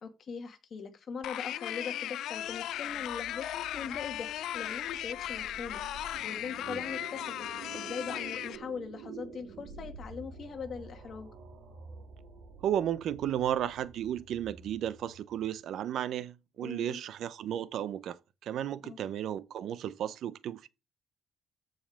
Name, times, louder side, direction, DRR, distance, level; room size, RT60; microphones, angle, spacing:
voice 1, 0.0-5.8 6.2-7.5 7.7-11.3 16.6-17.0 18.8-19.0, left 6 dB, 45° left, 2.1 m, -41 dB
sound 1, 1.2-8.6, left 12 dB, 80° left, 0.5 m, -37 dB
sound 2, 2.4-15.6, right 5 dB, 90° right, 3.6 m, -49 dB
voice 2, 12.6-20.7, right 10 dB, 70° right, 0.7 m, -34 dB
14.0 x 5.4 x 3.6 m
cardioid pair, 130°, 0 cm